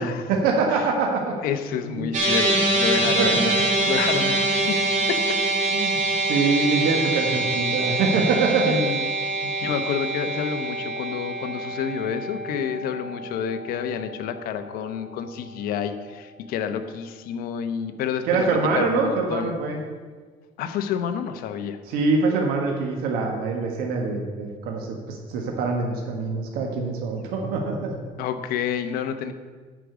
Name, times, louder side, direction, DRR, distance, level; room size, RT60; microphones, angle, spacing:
voice 1, 0.0-1.3 1.9-2.1 3.2-3.7 5.7-8.8 9.4-9.5 18.3-19.8 21.9-28.0, right 4 dB, 85° right, 1 dB, 1.5 m, -24 dB
voice 2, 1.3-3.5 3.9-5.4 8.6-9.0 9.6-19.6 20.6-21.8 28.2-29.3, left 7 dB, 75° left, 9 dB, 0.9 m, -29 dB
sound 1, 2.1-14.6, right 2 dB, 55° right, 2.6 m, -25 dB
9.8 x 5.1 x 8.2 m, 1.5 s
cardioid pair, 130°, 15 cm